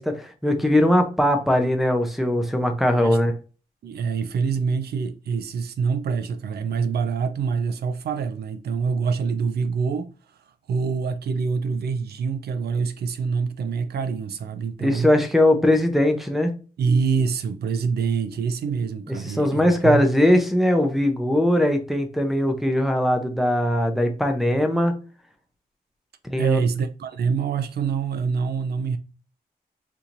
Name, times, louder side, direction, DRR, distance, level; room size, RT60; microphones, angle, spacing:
voice 1, 0.0-3.3 14.8-16.5 19.1-24.9 26.2-26.6, left 1 dB, ahead, 0.5 m, -20 dB
voice 2, 3.8-10.1 10.7-15.1 16.8-20.1 26.4-29.0, right 5 dB, 80° right, 0.4 m, -25 dB
4.4 x 2.7 x 2.5 m
wide cardioid pair, 150°, 16 cm